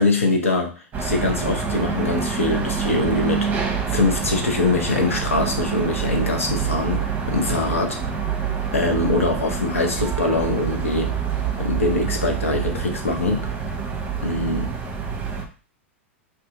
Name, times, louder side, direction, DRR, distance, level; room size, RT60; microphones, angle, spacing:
voice 1, 0.0-8.0 8.7-11.1 11.6-13.8 14.2-14.7, left 2 dB, 85° left, 3 dB, 0.8 m, -23 dB
sound 1, 0.9-15.4, right 6 dB, 25° right, 0.8 m, -26 dB
2.7 x 2.5 x 3.7 m, 0.37 s
hypercardioid pair, 95°, 7 cm